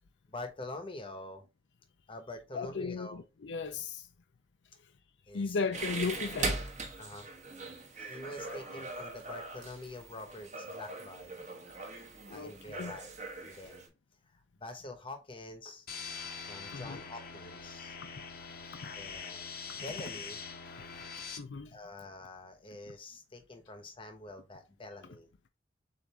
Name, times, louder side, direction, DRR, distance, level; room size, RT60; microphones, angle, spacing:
voice 1, 0.3-1.5 2.1-3.2 5.3-5.6 7.0-7.3 8.0-11.3 12.3-13.1 13.4-13.9 14.3-15.9 16.5-18.0 18.9-20.4 21.7-25.3, left 2 dB, 30° left, 0.9 m, -46 dB
voice 2, 2.5-4.1 5.3-6.6 8.4-8.8 12.3-13.0 16.7-17.0 21.4-21.7, left 4 dB, 80° left, 0.5 m, -36 dB
sound 1, 5.7-13.9, right 3 dB, 40° right, 1.0 m, -40 dB
sound 2, 15.9-21.4, left 5 dB, 55° left, 0.8 m, -43 dB
6.8 x 2.6 x 2.9 m
head